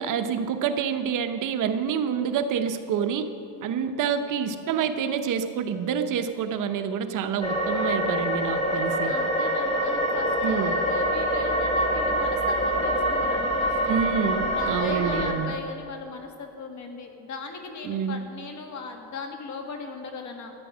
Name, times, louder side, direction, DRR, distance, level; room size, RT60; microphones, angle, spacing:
voice 1, 0.0-3.3 3.6-9.1 10.4-10.7 13.9-15.5 17.8-18.3, right 7 dB, 50° right, 8 dB, 0.8 m, -27 dB
sound 1, 7.4-15.3, equal, 15° left, 1.6 m, -25 dB
voice 2, 9.1-14.0 14.5-20.5, left 4 dB, 45° left, 4 dB, 1.7 m, -38 dB
13.5 x 9.4 x 6.1 m, 2.6 s
cardioid pair, 130°, 40 cm